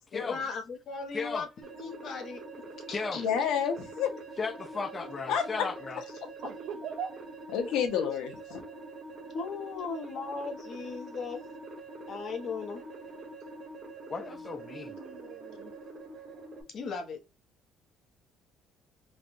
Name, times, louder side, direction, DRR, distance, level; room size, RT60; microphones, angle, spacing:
voice 1, 0.1-2.6 2.9-3.3 8.0-8.1 9.3-11.4 12.1-12.8 16.7-17.2, left 4 dB, 45° left, 0.9 m, -37 dB
sound 1, 1.6-16.6, right 2 dB, 35° right, 0.8 m, -45 dB
voice 2, 3.1-4.1 5.3-5.4 7.5-8.6, left 7 dB, 75° left, 0.9 m, -29 dB
voice 3, 4.4-6.0 14.1-15.0, left 4 dB, 20° left, 0.5 m, -35 dB
voice 4, 6.4-7.2 8.1-8.2 8.7-8.8 14.4-15.7, right 8 dB, 60° right, 0.4 m, -41 dB
3.4 x 2.3 x 2.6 m
cardioid pair, 160°, 0 cm